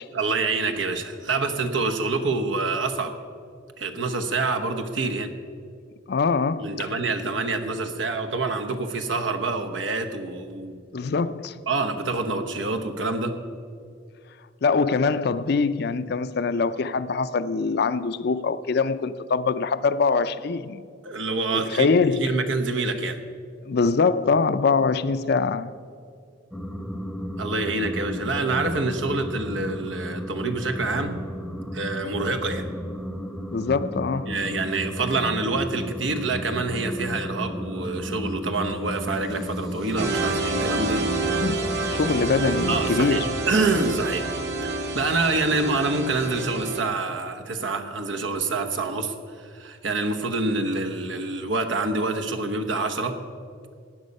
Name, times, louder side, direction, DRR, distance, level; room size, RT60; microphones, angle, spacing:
voice 1, 0.1-3.2 3.8-5.3 6.6-10.8 11.7-13.4 21.0-23.2 27.4-31.2 31.7-32.7 34.3-41.0 42.7-44.3 44.9-53.2, right 3 dB, 90° right, 1.1 m, -26 dB
voice 2, 6.1-6.9 10.9-11.5 14.6-20.8 21.5-22.4 23.6-25.7 33.5-34.3 41.3-41.6 42.0-43.3, left 4 dB, 60° left, 0.5 m, -23 dB
sound 1, 26.5-43.0, equal, ahead, 0.7 m, -34 dB
sound 2, 40.0-46.8, right 3 dB, 65° right, 1.7 m, -28 dB
15.5 x 9.5 x 5.4 m
head